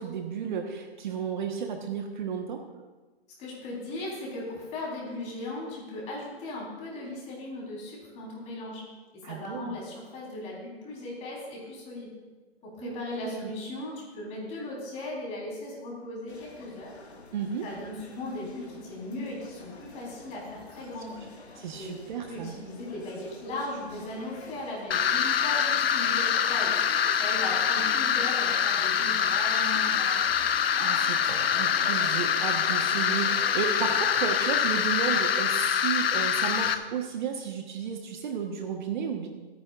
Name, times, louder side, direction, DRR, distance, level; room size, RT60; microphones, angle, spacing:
voice 1, 0.0-2.6 9.2-9.8 12.8-13.0 13.2-13.5 17.3-17.7 21.6-22.5 30.8-39.3, right 7 dB, 45° right, 4 dB, 1.2 m, -33 dB
voice 2, 3.4-8.8 9.1-12.1 12.6-16.9 17.6-21.2 21.7-21.9 22.3-26.8 27.2-30.3, left 2 dB, 20° left, -4 dB, 3.9 m, -37 dB
sound 1, 16.3-35.0, left 3 dB, 90° left, 1.8 m, -48 dB
sound 2, 24.9-36.7, left 8 dB, 65° left, 0.8 m, -25 dB
24.0 x 9.6 x 2.5 m, 1.3 s
hypercardioid pair, 145°, 32 cm